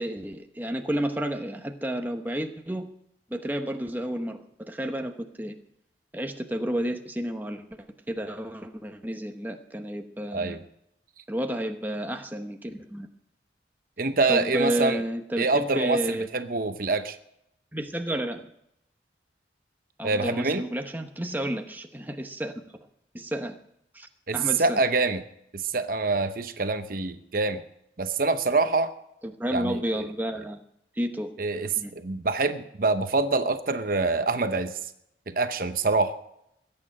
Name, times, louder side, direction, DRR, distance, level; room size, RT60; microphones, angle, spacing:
voice 1, 0.0-2.9 3.3-5.5 6.1-7.6 8.1-10.6 11.3-13.1 14.3-16.3 17.7-18.5 20.0-22.6 23.1-23.6 23.9-24.8 29.2-30.6 30.9-31.3 31.8-31.9, right 1 dB, 10° right, 5 dB, 0.9 m, -31 dB
voice 2, 14.0-15.0 15.4-17.2 20.0-20.6 24.3-25.2 25.5-27.6 28.0-28.9 29.5-30.1 31.4-31.7 31.9-34.9 35.3-36.1, right 3 dB, 50° right, 9 dB, 0.8 m, -25 dB
21.5 x 8.8 x 5.5 m, 0.78 s
head